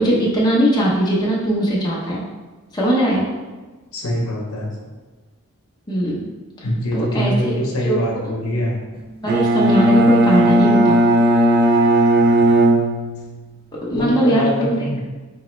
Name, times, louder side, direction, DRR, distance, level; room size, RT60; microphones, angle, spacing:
voice 1, 0.0-2.2 2.7-3.2 5.9-6.2 6.9-7.3 7.8-8.3 9.2-11.0 13.9-14.9, right 1 dB, 20° left, -5 dB, 0.7 m, -19 dB
voice 2, 3.9-4.7 6.6-8.8 13.9-15.0, left 1 dB, 75° left, -1 dB, 0.8 m, -23 dB
Bowed string instrument, 9.3-13.5, right 1 dB, 45° right, 0.4 m, -15 dB
4.1 x 3.4 x 3.1 m, 1.3 s
head